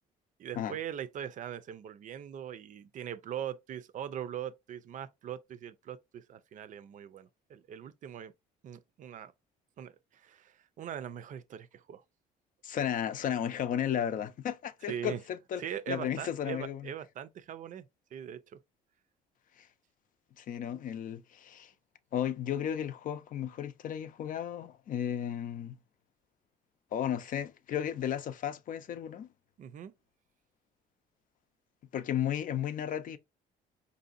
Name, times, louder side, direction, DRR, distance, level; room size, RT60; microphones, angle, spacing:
voice 1, 0.4-8.3 8.6-9.3 9.8-12.0 14.8-15.2 15.6-17.9 18.1-18.6 29.6-29.9, right 9 dB, 50° right, 0.5 m, -41 dB
voice 2, 12.6-16.9 19.6-19.7 20.4-21.7 22.1-25.8 26.9-29.3 31.9-33.2, left 9 dB, 55° left, 0.5 m, -34 dB
4.9 x 2.7 x 2.5 m
cardioid pair, 110°, 17 cm